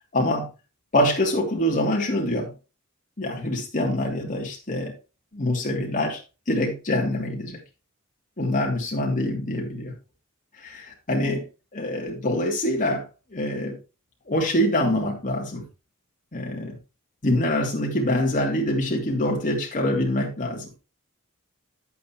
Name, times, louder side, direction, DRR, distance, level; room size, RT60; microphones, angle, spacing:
voice 1, 0.1-0.5 0.9-2.5 3.2-4.9 5.3-6.2 6.5-7.6 8.4-9.9 10.6-11.4 11.7-13.0 13.3-13.8 14.3-15.6 16.3-16.8 17.2-20.7, left 1 dB, 35° left, 0 dB, 2.8 m, -25 dB
9.6 x 8.4 x 3.0 m, 0.30 s
head